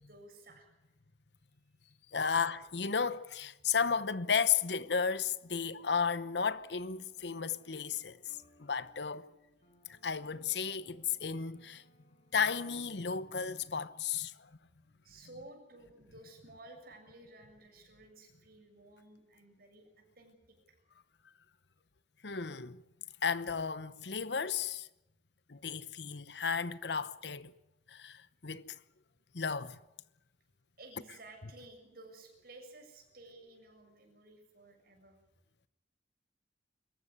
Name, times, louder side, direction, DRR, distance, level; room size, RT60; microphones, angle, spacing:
voice 1, 0.1-0.7 2.2-2.4 5.5-6.1 8.5-8.7 14.8-20.7 29.2-29.7 30.8-35.2, right 2 dB, 55° right, 7.1 m, -55 dB
voice 2, 2.1-9.3 9.9-11.8 12.3-14.5 22.2-22.8 23.2-24.9 25.5-27.5 27.9-28.8 29.3-29.8, left 6 dB, 70° left, 1.0 m, -34 dB
sound 1, 5.3-14.0, equal, 40° left, 5.3 m, -67 dB
26.0 x 15.0 x 9.7 m
head